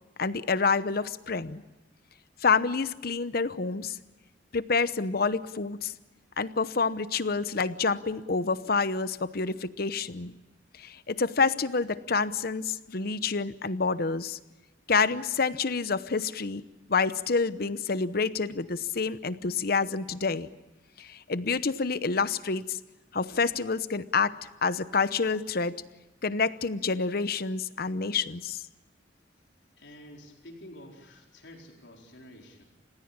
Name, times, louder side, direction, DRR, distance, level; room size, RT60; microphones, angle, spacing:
voice 1, 0.2-1.6 2.4-4.0 4.5-5.9 6.4-10.3 10.8-14.4 14.9-16.6 16.9-20.5 21.0-22.8 23.1-25.8 26.2-28.6, left 4 dB, 55° left, 14 dB, 0.9 m, -28 dB
voice 2, 29.8-32.6, left 1 dB, 80° left, 1 dB, 4.6 m, -49 dB
29.5 x 16.5 x 8.8 m, 1.1 s
head